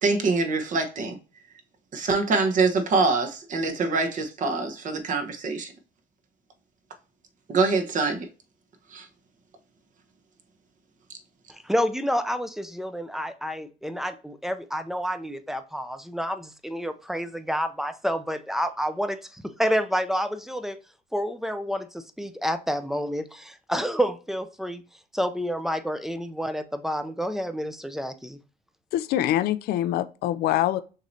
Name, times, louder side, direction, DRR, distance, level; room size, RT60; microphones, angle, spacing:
voice 1, 0.0-1.2 1.9-5.7 7.5-8.3 8.9-9.1, right 3 dB, 50° right, 1.0 m, -24 dB
voice 2, 11.5-20.8 21.1-24.8 25.1-28.4, equal, ahead, 0.5 m, -29 dB
voice 3, 28.9-30.8, left 13 dB, 70° left, 0.4 m, -24 dB
6.4 x 3.1 x 2.7 m
cardioid pair, 110°, 17 cm